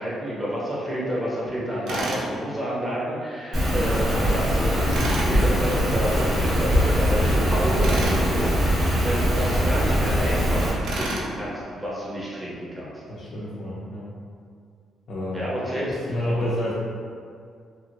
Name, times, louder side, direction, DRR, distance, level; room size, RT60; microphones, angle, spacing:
voice 1, 0.0-12.9 15.3-16.5, equal, 10° right, -7 dB, 0.7 m, -29 dB
Tools, 1.9-2.3 4.9-5.3 7.8-8.2 10.8-11.3, right 2 dB, 75° right, 0.5 m, -29 dB
Rain, 3.5-10.7, equal, 60° right, 1.4 m, -22 dB
voice 2, 13.1-14.1 15.1-15.4 15.8-16.7, left 1 dB, 65° left, -8 dB, 0.5 m, -29 dB
3.1 x 2.5 x 2.6 m, 2.3 s
cardioid pair, 90°, 0 cm